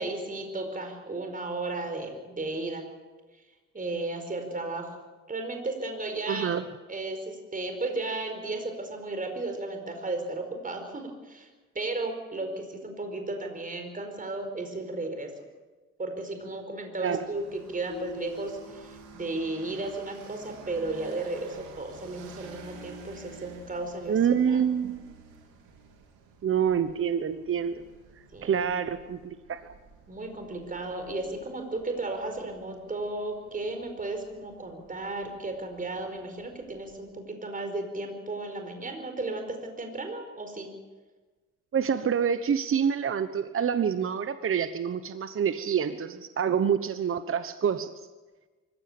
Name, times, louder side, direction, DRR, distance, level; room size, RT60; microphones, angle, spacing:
voice 1, 0.0-2.8 3.7-4.9 5.3-6.6 6.9-11.5 11.7-15.3 16.0-24.6 28.3-28.7 30.1-40.7, right 2 dB, 25° right, 5 dB, 4.8 m, -34 dB
voice 2, 6.3-6.6 17.0-17.3 24.1-25.1 26.4-27.8 28.4-29.6 41.7-47.9, right 7 dB, 45° right, 11 dB, 1.1 m, -27 dB
sound 1, 17.2-37.0, right 4 dB, 90° right, 4.0 m, -52 dB
sound 2, 17.9-20.1, left 5 dB, 60° left, 4.0 m, -46 dB
24.5 x 16.0 x 8.7 m, 1.3 s
cardioid pair, 90°, 30 cm